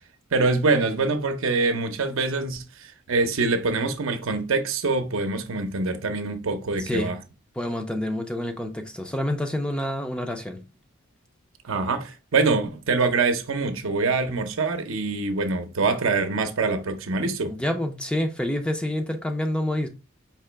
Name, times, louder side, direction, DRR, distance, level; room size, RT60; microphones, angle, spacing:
voice 1, 0.3-7.2 11.6-17.5, right 3 dB, 75° right, 0.7 m, -24 dB
voice 2, 6.8-7.2 7.6-10.6 17.5-19.9, left 1 dB, 5° left, 0.4 m, -28 dB
4.7 x 2.9 x 3.3 m
head